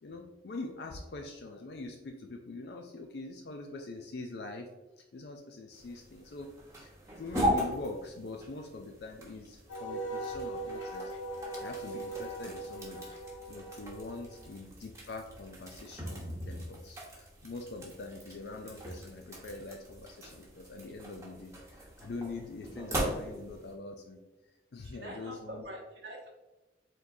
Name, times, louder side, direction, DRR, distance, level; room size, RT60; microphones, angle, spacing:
voice 1, 0.0-4.7 5.0-11.1 11.5-13.1 13.5-24.2 24.7-25.6, left 2 dB, 60° left, 3 dB, 0.4 m, -44 dB
sound 1, 5.7-23.7, equal, 15° right, 1.0 m, -39 dB
Wind instrument woodwind instrument, 9.7-14.5, right 2 dB, 85° left, 1.0 m, -40 dB
voice 2, 24.8-26.3, right 1 dB, 80° right, -4 dB, 1.0 m, -45 dB
5.0 x 3.8 x 2.6 m, 1.1 s
head